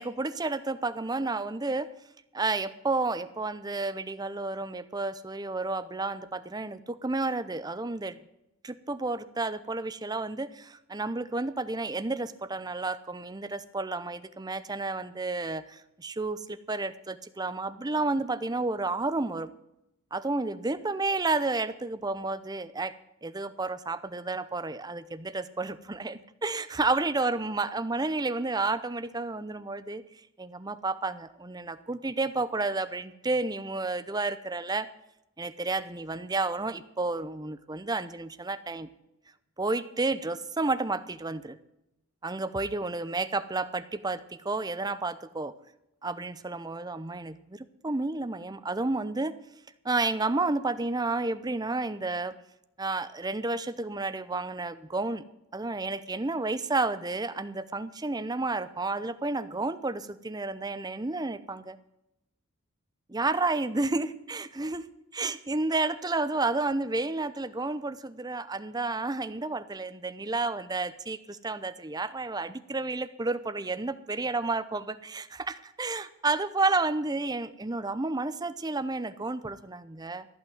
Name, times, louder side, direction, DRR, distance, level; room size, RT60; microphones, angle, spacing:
voice 1, 0.0-1.9 2.3-8.2 8.6-19.5 20.1-22.9 23.2-30.0 30.4-34.9 35.4-38.9 39.6-41.6 42.2-45.5 46.0-49.3 49.8-52.3 52.8-55.2 55.5-61.8 63.1-64.9 65.1-80.3, right 3 dB, 20° right, 13 dB, 0.7 m, -31 dB
14.5 x 6.0 x 9.2 m, 0.85 s
head